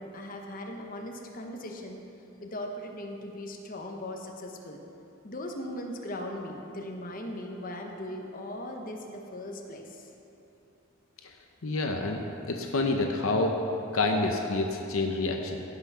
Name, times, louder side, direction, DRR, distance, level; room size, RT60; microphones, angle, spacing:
voice 1, 0.0-2.0 2.4-4.8 5.2-10.1, left 1 dB, 40° left, 2 dB, 1.0 m, -39 dB
voice 2, 11.6-12.2 12.5-13.6 13.9-15.6, left 2 dB, 70° left, 3 dB, 0.7 m, -28 dB
16.0 x 5.8 x 5.6 m, 2.9 s
head